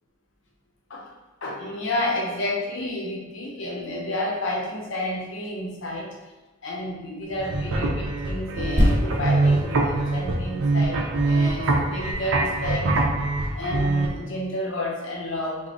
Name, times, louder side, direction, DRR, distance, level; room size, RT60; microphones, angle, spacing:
voice 1, 1.4-6.1 6.6-13.1 13.5-15.7, left 1 dB, 60° left, -1 dB, 0.7 m, -30 dB
sound 1, 7.3-14.1, right 2 dB, 75° right, 0.5 m, -24 dB
sound 2, 8.8-12.4 13.0-13.1, equal, 35° right, 1.0 m, -27 dB
3.5 x 2.0 x 3.7 m, 1.1 s
head